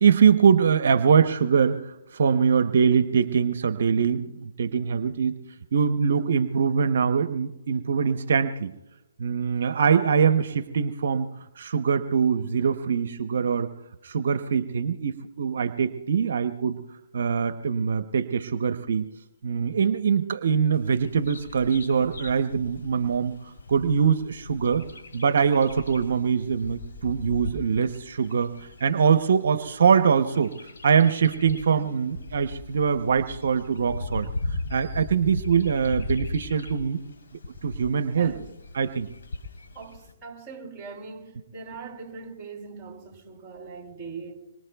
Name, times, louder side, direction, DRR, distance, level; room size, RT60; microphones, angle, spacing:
voice 1, 0.0-5.4 5.7-8.7 9.2-13.7 14.0-16.8 17.1-19.1 19.4-23.4 23.7-24.9 25.1-30.5 30.8-37.0 37.6-38.3 38.7-39.1, right 6 dB, 65° right, 0.7 m, -23 dB
Bird vocalization bird call bird song, 20.7-40.1, left 2 dB, 70° left, 3.5 m, -39 dB
voice 2, 39.7-44.5, right 4 dB, 10° right, 3.1 m, -41 dB
26.0 x 23.5 x 2.3 m
hypercardioid pair, 150°, 0 cm